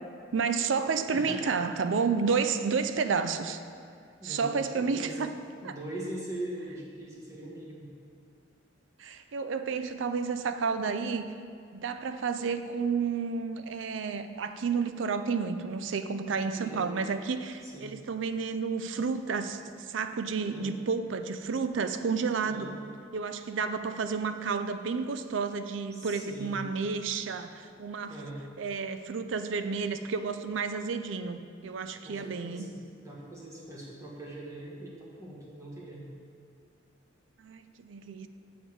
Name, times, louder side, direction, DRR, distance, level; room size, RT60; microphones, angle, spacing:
voice 1, 0.3-3.6 4.2-5.3 5.6-5.7 9.0-11.3 11.7-22.7 23.1-28.1 28.6-32.7 37.4-38.3, right 5 dB, 75° right, 9 dB, 0.5 m, -31 dB
voice 2, 1.1-1.6 4.2-5.2 5.6-7.9 16.5-17.0 17.6-17.9 20.4-20.7 22.4-22.7 25.9-26.8 28.1-28.5 32.0-32.8 33.0-36.1, right 1 dB, 15° right, -5 dB, 1.4 m, -41 dB
7.2 x 7.2 x 4.6 m, 2.4 s
head